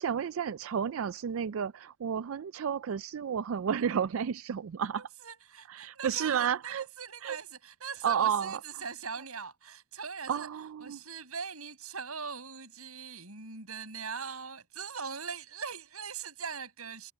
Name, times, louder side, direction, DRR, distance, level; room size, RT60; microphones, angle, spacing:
voice 1, 0.0-5.1 5.7-6.9 7.2-7.4 8.0-8.8 10.3-11.0, right 8 dB, 65° right, 0.4 m, -32 dB
voice 2, 5.0-10.5 10.8-17.1, right 5 dB, 85° right, 7.0 m, -41 dB
head